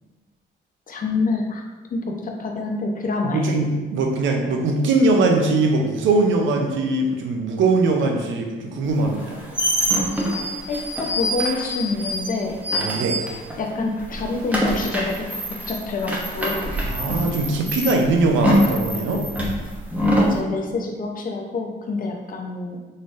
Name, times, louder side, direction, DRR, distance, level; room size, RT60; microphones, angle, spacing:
voice 1, 0.9-1.6 1.9-3.6 10.7-12.6 13.6-15.2 15.7-16.7 20.2-23.0, left 3 dB, 45° left, 2 dB, 0.6 m, -26 dB
voice 2, 3.2-9.4 12.8-13.2 16.9-19.2, right 3 dB, 75° right, 2 dB, 0.6 m, -21 dB
sound 1, 9.1-13.7 14.0-20.4, equal, 5° right, 0.9 m, -24 dB
4.0 x 3.2 x 2.5 m, 1.3 s
cardioid pair, 90°, 20 cm